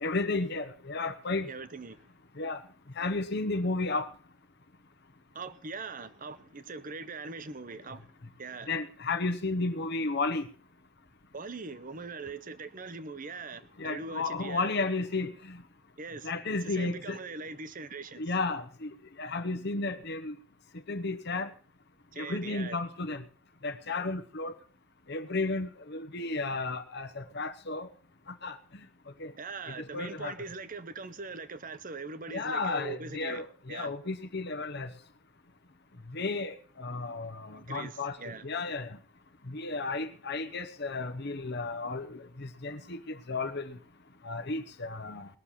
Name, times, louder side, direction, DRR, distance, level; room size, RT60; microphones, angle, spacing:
voice 1, 0.0-1.5 2.4-2.6 3.0-4.1 8.7-10.4 13.8-15.3 16.2-17.2 18.2-18.6 19.2-20.3 20.9-21.5 22.2-23.2 23.6-24.5 25.1-27.9 28.4-28.5 29.2-29.3 29.9-30.3 32.3-34.9 36.1-38.1 38.4-38.9 39.5-43.0 43.3-43.6 44.3-45.3, left 3 dB, 55° left, 1.0 m, -33 dB
voice 2, 1.4-2.1 5.3-8.1 8.4-8.7 11.3-14.7 16.0-16.3 16.6-18.3 22.1-22.8 29.4-34.0 37.6-38.5, right 4 dB, 40° right, 0.8 m, -41 dB
20.0 x 6.7 x 5.7 m
head